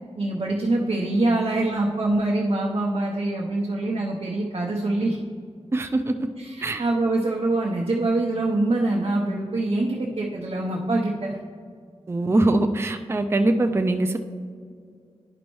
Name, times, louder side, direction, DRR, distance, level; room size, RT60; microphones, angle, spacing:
voice 1, 0.2-5.2 6.4-11.4, right 2 dB, 60° right, -3 dB, 0.8 m, -24 dB
voice 2, 5.7-6.3 6.6-6.8 12.1-14.2, right 2 dB, 20° right, 6 dB, 0.4 m, -22 dB
10.5 x 5.2 x 3.1 m, 2.1 s
wide cardioid pair, 95°, 11 cm